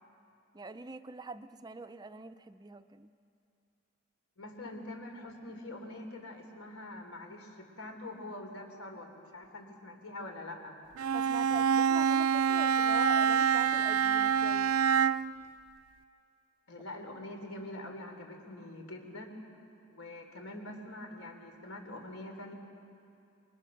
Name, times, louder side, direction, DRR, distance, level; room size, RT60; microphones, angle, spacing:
voice 1, 0.5-3.1 11.1-14.7, right 3 dB, 20° right, 11 dB, 0.5 m, -44 dB
voice 2, 4.4-10.7 16.7-19.4 19.9-22.5, left 1 dB, 75° left, 3 dB, 3.9 m, -44 dB
Bowed string instrument, 11.0-15.4, right 7 dB, 85° right, 0.5 m, -26 dB
28.0 x 24.5 x 6.6 m, 2.6 s
head